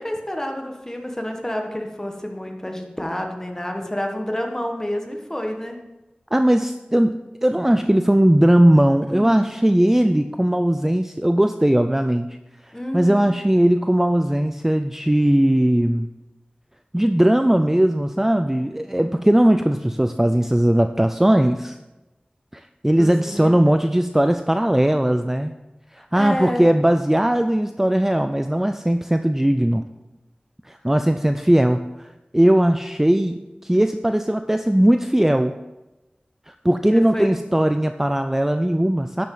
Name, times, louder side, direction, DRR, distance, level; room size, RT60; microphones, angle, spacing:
voice 1, 0.0-5.8 9.1-9.4 12.7-13.3 23.0-23.6 26.1-26.7 36.9-37.3, left 1 dB, 15° left, 3 dB, 1.5 m, -29 dB
voice 2, 6.3-7.1 7.4-12.4 12.9-16.1 16.9-21.8 22.5-25.5 25.9-29.8 30.7-32.1 32.3-35.5 36.5-39.3, right 1 dB, 10° right, 8 dB, 0.4 m, -18 dB
11.0 x 7.5 x 3.9 m, 1.0 s
wide cardioid pair, 60°, 3 cm